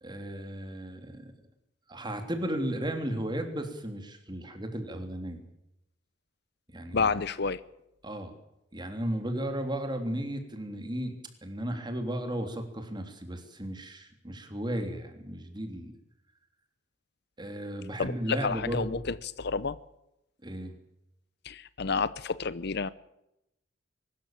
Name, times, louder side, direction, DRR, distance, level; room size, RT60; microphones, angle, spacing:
voice 1, 0.0-1.3 1.9-5.4 6.7-7.1 8.0-8.3 8.7-15.9 17.4-19.0 20.4-20.7, right 1 dB, 25° right, 3.3 m, -35 dB
voice 2, 6.9-7.6 18.0-19.8 21.4-22.9, left 4 dB, 60° left, 0.8 m, -30 dB
23.0 x 13.5 x 8.9 m
head